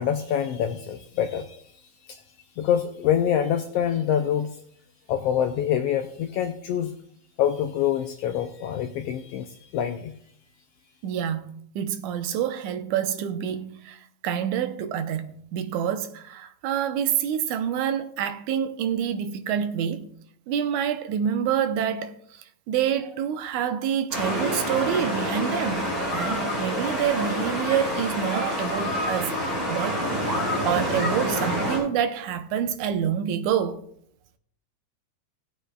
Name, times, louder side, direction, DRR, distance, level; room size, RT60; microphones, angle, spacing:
voice 1, 0.0-2.2 2.6-4.6 5.1-6.9 7.4-10.2, left 9 dB, 85° left, 1.4 m, -26 dB
voice 2, 11.0-20.1 20.5-29.4 29.7-33.8, right 9 dB, 90° right, 2.2 m, -27 dB
sound 1, 24.1-31.8, equal, 15° right, 4.5 m, -27 dB
18.5 x 8.3 x 2.3 m
omnidirectional pair, 3.3 m